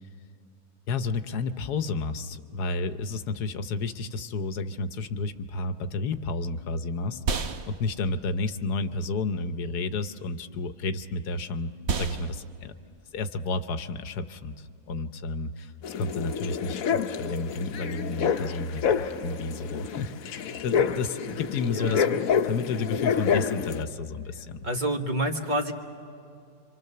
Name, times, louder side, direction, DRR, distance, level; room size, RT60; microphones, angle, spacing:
voice 1, 0.9-12.7 13.1-22.1 22.4-24.7, left 3 dB, 90° left, 10 dB, 1.4 m, -31 dB
sound 1, 5.9-15.5, right 5 dB, 50° right, 1.1 m, -37 dB
sound 2, 15.8-23.8, left 7 dB, 65° left, 1.1 m, -28 dB
voice 2, 21.7-22.2 24.6-25.7, right 1 dB, 30° right, 3 dB, 1.4 m, -28 dB
27.0 x 25.0 x 6.7 m, 2.6 s
omnidirectional pair, 1.7 m